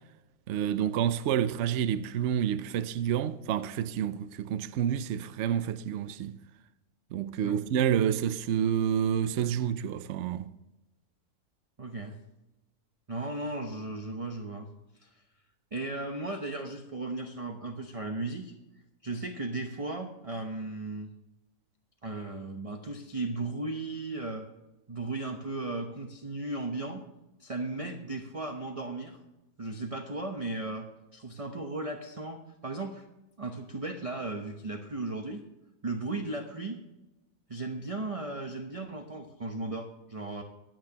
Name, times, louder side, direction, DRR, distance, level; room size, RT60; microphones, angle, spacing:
voice 1, 0.5-6.4 7.1-10.5, right 9 dB, 60° right, 0.8 m, -29 dB
voice 2, 11.8-12.2 13.1-14.7 15.0-15.1 15.7-18.5 19.0-21.1 22.0-24.5 24.9-27.0 27.4-29.2 29.6-30.9 31.1-33.0 33.4-35.4 35.8-36.8 37.5-40.4, right 2 dB, 30° right, 0.8 m, -36 dB
24.0 x 8.7 x 2.9 m
omnidirectional pair, 1.6 m